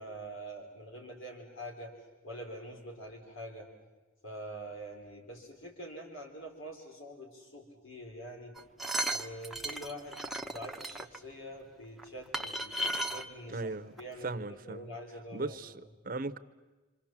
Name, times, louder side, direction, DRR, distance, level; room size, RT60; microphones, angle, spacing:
voice 1, 0.0-1.9 2.2-3.7 4.2-8.6 9.1-10.2 10.4-12.7 13.1-13.7 14.0-15.6, right 1 dB, 75° left, 1 dB, 3.9 m, -45 dB
sound 1, 8.6-11.2 12.0-12.1 12.3-13.2 14.0-14.1 14.3-14.4, right 1 dB, ahead, 0.8 m, -35 dB
voice 2, 13.5-14.0 14.2-14.9 15.3-16.4, right 2 dB, 45° right, 11 dB, 0.8 m, -37 dB
27.0 x 26.0 x 7.4 m, 1.2 s
head